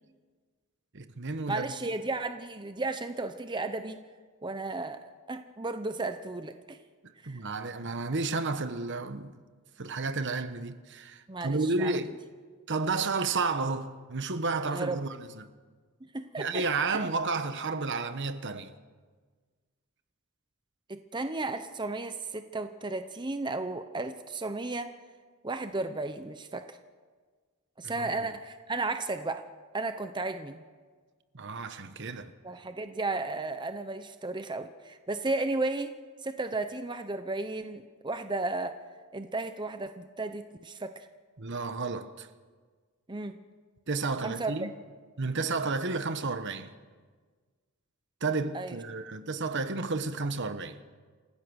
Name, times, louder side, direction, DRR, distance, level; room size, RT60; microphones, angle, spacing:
voice 1, 0.9-1.7 7.3-9.4 9.8-12.2 12.7-15.5 16.4-18.7 28.0-28.3 31.3-32.3 41.4-42.3 43.9-44.7 45.2-46.7 48.2-50.8, right 3 dB, 55° right, 1.1 m, -31 dB
voice 2, 1.5-4.0 4.4-6.8 7.2-7.4 11.3-12.0 14.7-15.0 16.1-16.6 16.9-17.0 20.9-24.9 25.4-26.8 27.8-29.4 29.7-30.6 32.4-35.9 36.2-38.8 39.1-41.1 43.1-43.4 44.2-44.5 48.5-48.8, right 2 dB, 20° right, 0.8 m, -34 dB
28.0 x 16.0 x 6.4 m
head